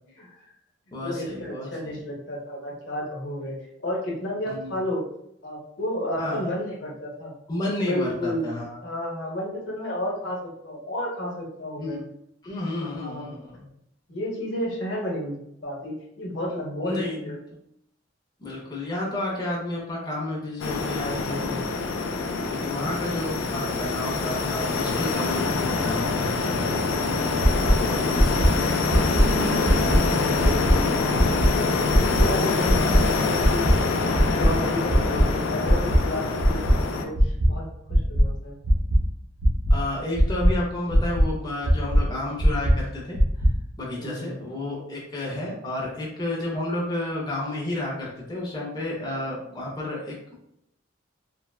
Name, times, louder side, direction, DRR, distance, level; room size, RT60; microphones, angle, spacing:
voice 1, 0.2-0.5 0.9-1.7 4.5-4.7 6.2-6.5 7.5-8.8 11.8-12.0 12.4-13.7 16.5-17.4 18.4-21.7 22.0-27.4 27.7-28.9 39.7-43.5 43.8-50.4, left 1 dB, 20° left, -4 dB, 0.6 m, -32 dB
voice 2, 1.0-3.5 3.8-5.1 5.4-7.3 7.8-12.0 12.8-13.3 14.1-17.0 17.2-17.4 29.8-33.7 34.3-37.6 37.9-38.6 44.0-44.3, left 1 dB, 70° left, -2 dB, 0.9 m, -32 dB
sound 1, 20.6-37.0, left 3 dB, 85° left, 0.4 m, -25 dB
sound 2, 27.4-27.7 28.1-28.5 28.9-29.2 29.6-30.0 30.4-30.7 31.1-31.5 31.9-32.2 32.6-33.0 33.4-33.7 34.1-34.5 34.9-35.2 35.6-36.0 36.4-36.7 37.1-37.5 37.9-38.2 38.6-39.0 39.4-39.7 40.1-40.5 40.9-41.2 41.6-42.0 42.4-42.7 43.1-43.5, equal, 50° right, 0.7 m, -18 dB
3.3 x 2.2 x 2.3 m, 0.78 s
head